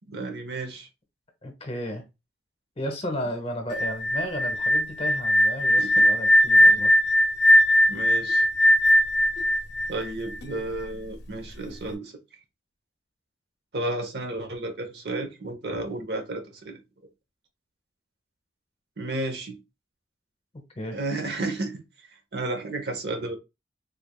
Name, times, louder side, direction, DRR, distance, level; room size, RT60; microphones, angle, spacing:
voice 1, 0.1-0.9 5.8-6.1 7.9-8.4 9.9-12.1 13.7-16.8 19.0-19.6 20.9-21.8 22.3-23.4, right 2 dB, 65° right, 0.9 m, -32 dB
voice 2, 1.4-2.0 2.8-7.0 20.8-21.0, equal, 35° left, 0.8 m, -33 dB
sound 1, 3.7-10.6, left 1 dB, 70° left, 0.6 m, -19 dB
3.5 x 3.3 x 2.3 m
head